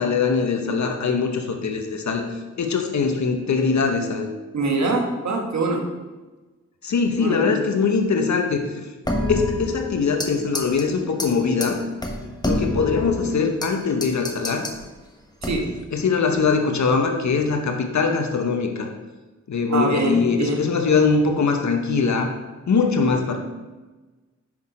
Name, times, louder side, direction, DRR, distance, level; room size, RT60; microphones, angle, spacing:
voice 1, 0.0-4.3 6.8-8.8 9.3-11.8 12.4-14.6 15.9-18.9 19.5-22.3 22.7-23.4, left 5 dB, 70° left, 4 dB, 0.9 m, -22 dB
voice 2, 4.5-5.8 7.2-7.7 15.4-15.7 19.7-20.6, right 3 dB, 65° right, 2 dB, 1.4 m, -24 dB
sound 1, 9.1-10.3 10.5-10.8 11.2-11.3 11.6-11.7 12.0-13.7 14.0-14.8 15.4-15.8, left 2 dB, 15° left, 1.3 m, -26 dB
6.2 x 5.7 x 4.9 m, 1.2 s
cardioid pair, 60°, 29 cm